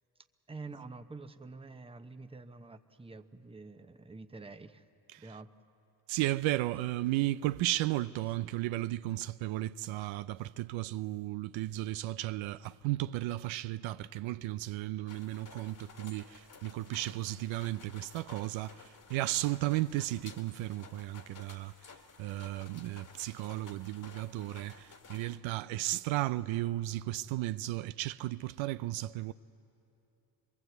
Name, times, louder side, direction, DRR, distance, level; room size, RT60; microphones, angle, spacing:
voice 1, 0.5-4.8 5.2-5.5, right 3 dB, 10° right, 0.9 m, -47 dB
voice 2, 6.1-21.7 22.2-29.3, right 16 dB, 75° right, 0.6 m, -34 dB
sound 1, 15.1-25.4, left 4 dB, 40° left, 2.0 m, -54 dB
23.0 x 22.5 x 8.0 m
cardioid pair, 85°, 46 cm